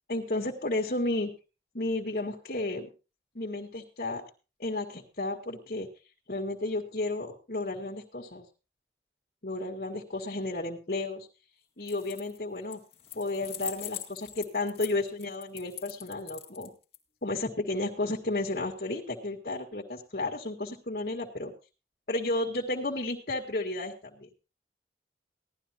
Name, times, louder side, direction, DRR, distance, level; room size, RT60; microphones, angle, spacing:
voice 1, 0.1-1.3 1.7-2.9 3.4-4.2 4.6-5.9 6.3-8.5 9.4-11.3 11.8-12.8 13.2-16.7 17.2-21.5 22.1-24.3, left 2 dB, 55° left, 0 dB, 1.8 m, -32 dB
sound 1, 11.8-12.4 12.7-17.0, left 10 dB, 35° left, 1.9 m, -42 dB
17.0 x 12.0 x 3.0 m, 0.32 s
head